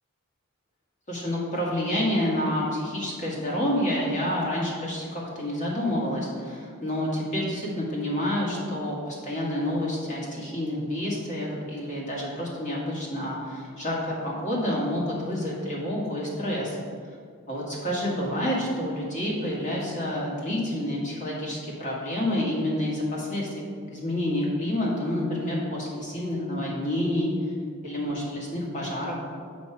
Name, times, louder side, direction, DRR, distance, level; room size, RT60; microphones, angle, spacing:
voice 1, 1.1-16.8 17.5-23.5 23.9-27.3 27.8-29.1, left 1 dB, 35° left, -4 dB, 1.8 m, -28 dB
6.9 x 6.2 x 4.6 m, 2.1 s
head